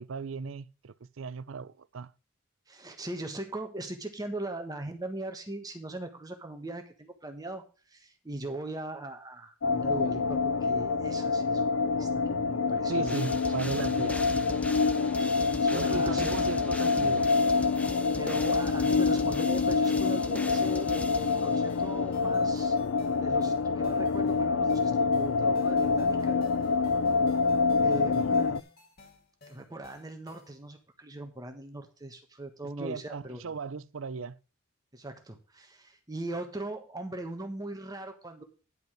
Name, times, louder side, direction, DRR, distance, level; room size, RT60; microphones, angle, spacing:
voice 1, 0.0-2.1 12.9-14.3 15.7-17.3 28.1-28.3 32.8-34.4, right 5 dB, 70° right, 0.5 m, -36 dB
voice 2, 2.7-13.4 15.1-16.5 18.2-22.8 23.2-26.4 27.7-28.7 29.5-33.4 34.9-38.4, right 2 dB, 20° right, 1.3 m, -40 dB
sound 1, 9.6-28.6, left 4 dB, 75° left, 0.5 m, -26 dB
sound 2, 13.1-21.9, left 1 dB, 5° left, 0.8 m, -41 dB
sound 3, 17.0-30.6, left 3 dB, 50° left, 2.9 m, -56 dB
10.5 x 5.4 x 6.3 m
head